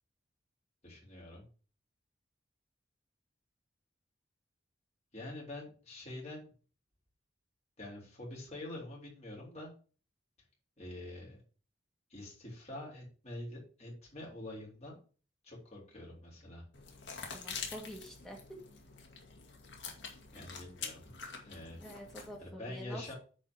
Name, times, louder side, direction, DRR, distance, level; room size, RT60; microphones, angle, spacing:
voice 1, 0.8-1.4 5.1-6.5 7.8-9.7 10.8-11.4 12.1-15.0 15.4-16.6 20.3-21.0 21.4-21.8 22.4-23.1, left 1 dB, 35° left, -3 dB, 3.8 m, -46 dB
sound 1, 16.7-22.4, left 6 dB, 80° left, 2.0 m, -46 dB
voice 2, 17.3-18.4 21.8-23.0, equal, ahead, -1 dB, 2.2 m, -47 dB
7.8 x 4.5 x 6.1 m, 0.39 s
head